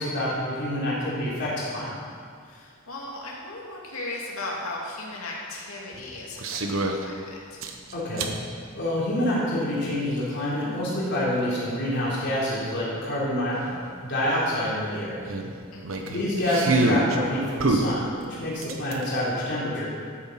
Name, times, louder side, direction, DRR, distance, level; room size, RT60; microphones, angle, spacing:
voice 1, 0.0-1.9 7.9-8.3 8.7-15.2 16.0-19.9, left 1 dB, 55° left, -7 dB, 3.8 m, -27 dB
voice 2, 2.4-7.6 15.7-16.2, left 2 dB, 80° left, -3 dB, 2.8 m, -37 dB
sound 1, 6.4-7.1 7.6-8.4 9.8-9.9 12.6-12.7 13.0-13.1 13.5-13.7 15.3-17.2 17.6-19.0, right 2 dB, 70° right, 1.1 m, -26 dB
13.0 x 8.8 x 5.9 m, 2.2 s
head